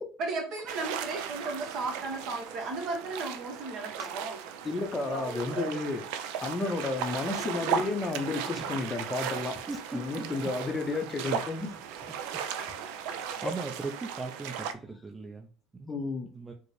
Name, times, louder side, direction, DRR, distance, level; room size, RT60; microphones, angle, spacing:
voice 1, 0.2-4.4 5.0-5.7 12.6-12.7 13.1-13.2, right 3 dB, 55° right, 3 dB, 1.0 m, -35 dB
sound 1, 0.7-14.7, right 8 dB, 75° right, 0.4 m, -36 dB
voice 2, 4.6-9.6 9.9-11.7 13.4-13.5 15.9-16.3, left 3 dB, 25° left, 7 dB, 0.6 m, -32 dB
voice 3, 13.0-15.5 15.7-15.9 16.3-16.5, right 4 dB, 20° right, 1 dB, 0.5 m, -38 dB
4.3 x 2.0 x 3.0 m, 0.40 s
supercardioid pair, 100°, 0 cm